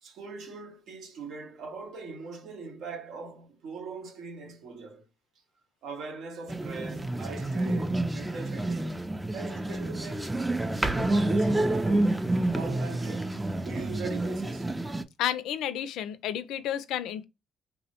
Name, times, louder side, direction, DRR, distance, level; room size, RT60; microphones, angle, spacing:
voice 1, 0.0-5.1 5.8-9.0 9.3-10.4 10.8-12.3 12.5-14.7, right 4 dB, 75° right, 0.8 m, -41 dB
sound 1, 6.5-15.0, right 2 dB, 10° right, 0.3 m, -28 dB
voice 2, 15.2-17.2, left 11 dB, 85° left, 0.3 m, -31 dB
3.2 x 2.0 x 2.8 m
cardioid pair, 90°, 0 cm